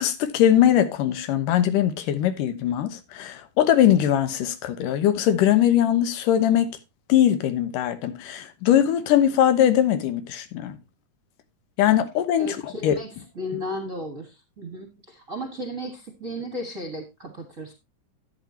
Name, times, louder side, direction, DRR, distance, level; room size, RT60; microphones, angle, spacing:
voice 1, 0.0-6.7 7.1-10.8 11.8-13.0, left 10 dB, 80° left, 2.7 m, -21 dB
voice 2, 12.4-17.7, left 1 dB, 35° right, 1.3 m, -35 dB
12.5 x 9.3 x 2.8 m
omnidirectional pair, 3.7 m